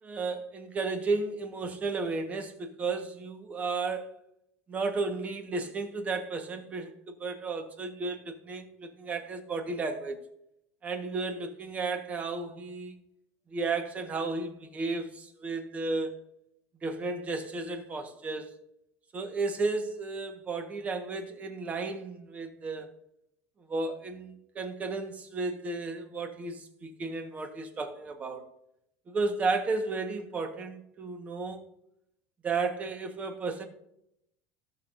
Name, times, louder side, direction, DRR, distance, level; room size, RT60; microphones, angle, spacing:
voice 1, 0.0-4.1 4.7-10.2 10.8-12.9 13.5-16.1 16.8-18.5 19.1-22.9 23.7-28.5 29.1-31.6 32.4-33.6, right 3 dB, 20° right, 1.3 m, -33 dB
19.0 x 6.4 x 2.6 m
cardioid pair, 155°, 6 cm